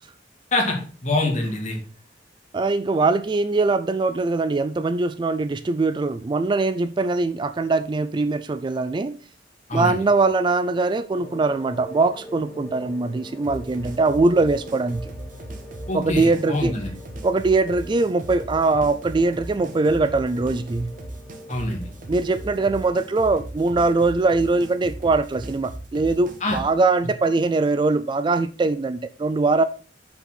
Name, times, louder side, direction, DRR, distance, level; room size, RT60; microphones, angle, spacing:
voice 1, 0.5-1.8 9.7-10.0 15.9-16.9 21.5-21.8 26.4-26.6, left 2 dB, 40° left, 2.2 m, -25 dB
voice 2, 2.5-9.1 9.7-15.1 15.9-16.7 17.2-20.9 22.1-29.6, right 3 dB, 25° right, 0.3 m, -22 dB
sound 1, 11.1-22.9, left 1 dB, 15° left, 2.3 m, -43 dB
sound 2, 13.4-26.7, right 1 dB, 50° right, 1.2 m, -38 dB
5.8 x 5.6 x 5.8 m
head